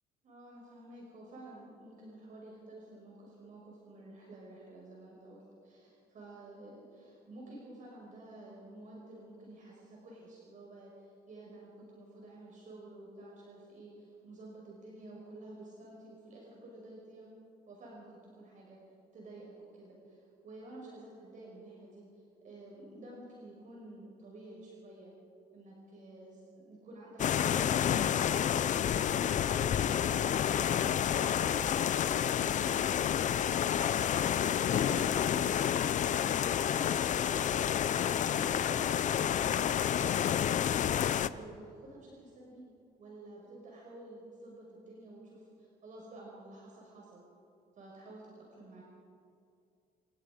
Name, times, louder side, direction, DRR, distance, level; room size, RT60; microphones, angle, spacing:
voice 1, 0.2-17.3 17.7-18.8 19.1-25.1 25.5-28.2 28.6-39.0 39.5-42.6 43.0-47.2 47.8-48.8, right 2 dB, 50° right, -3 dB, 5.5 m, -51 dB
sound 1, 27.2-41.3, left 9 dB, 45° left, 0.7 m, -29 dB
27.5 x 19.0 x 5.1 m, 2.4 s
cardioid pair, 110°, 17 cm